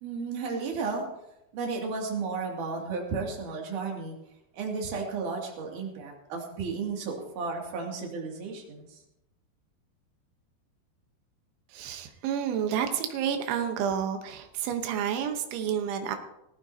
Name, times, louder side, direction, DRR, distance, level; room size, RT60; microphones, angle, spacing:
voice 1, 0.0-1.1 1.5-4.2 4.5-9.0, right 4 dB, 50° right, -1 dB, 3.6 m, -33 dB
voice 2, 11.7-16.2, right 8 dB, 90° right, 5 dB, 3.6 m, -30 dB
20.0 x 14.5 x 2.8 m, 0.86 s
omnidirectional pair, 5.3 m